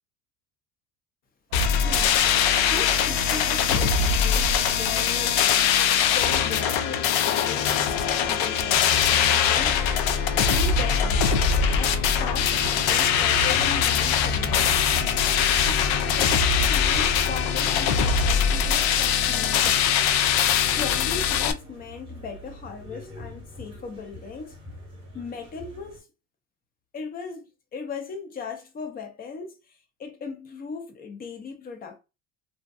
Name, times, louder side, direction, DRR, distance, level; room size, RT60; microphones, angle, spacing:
sound 1, 1.5-21.5, left 8 dB, 70° left, 0.5 m, -22 dB
sound 2, 1.5-18.6, right 6 dB, 50° right, 0.5 m, -41 dB
voice 1, 1.8-5.4 6.1-9.9 10.4-19.8 20.6-24.6 25.1-26.1 26.9-32.0, left 5 dB, 25° left, 0.5 m, -38 dB
sound 3, 11.3-26.0, right 1 dB, 15° right, 1.0 m, -39 dB
2.7 x 2.2 x 2.2 m
supercardioid pair, 125°, 40 cm